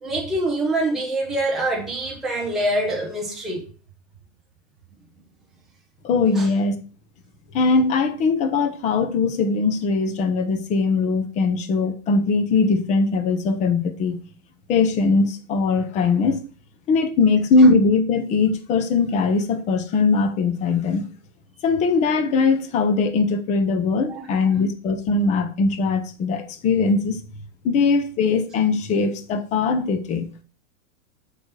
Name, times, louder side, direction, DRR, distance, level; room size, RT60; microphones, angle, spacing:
voice 1, 0.0-3.7 6.4-6.5 24.1-24.3, right 1 dB, ahead, 0.3 m, -25 dB
voice 2, 6.0-6.8 7.5-14.2 14.7-16.4 16.9-21.0 21.6-27.2 27.6-30.3, left 4 dB, 20° left, 0.7 m, -20 dB
7.0 x 4.9 x 6.2 m
supercardioid pair, 170°, 40 cm